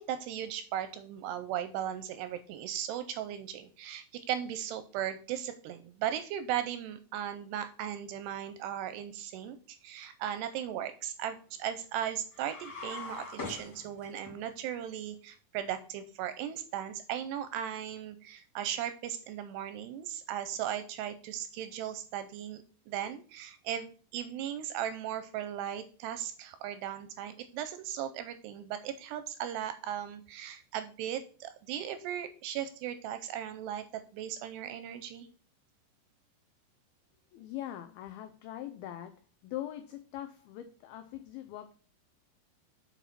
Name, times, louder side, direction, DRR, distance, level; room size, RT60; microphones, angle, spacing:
voice 1, 0.0-33.8 34.1-35.3, right 10 dB, 80° right, 2.5 m, -37 dB
sound 1, 12.3-14.3, left 3 dB, 25° left, 3.1 m, -42 dB
voice 2, 37.3-41.7, left 12 dB, 85° left, 2.1 m, -42 dB
7.1 x 5.6 x 5.9 m
omnidirectional pair, 5.2 m